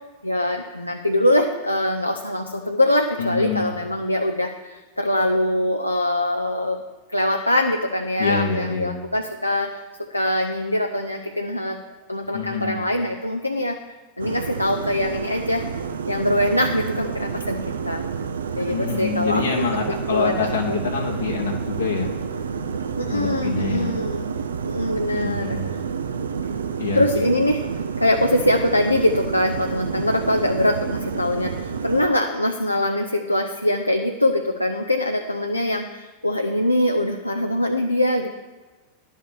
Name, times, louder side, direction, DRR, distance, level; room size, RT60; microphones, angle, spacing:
voice 1, 0.2-6.8 7.1-9.8 10.1-11.8 12.1-13.8 14.2-15.6 16.1-18.0 18.6-19.4 19.9-20.8 23.0-24.3 24.6-25.8 26.9-27.6 28.0-38.3, left 1 dB, 85° left, 3 dB, 0.6 m, -23 dB
voice 2, 3.2-3.7 8.2-8.9 12.3-12.8 18.7-22.1 23.1-23.9 25.1-25.7 26.8-27.2, left 4 dB, 70° left, -1 dB, 1.1 m, -26 dB
sound 1, 14.2-32.1, right 6 dB, 70° right, 0.6 m, -29 dB
11.0 x 5.5 x 6.7 m, 1.2 s
figure-of-eight pair, 90°, 0 cm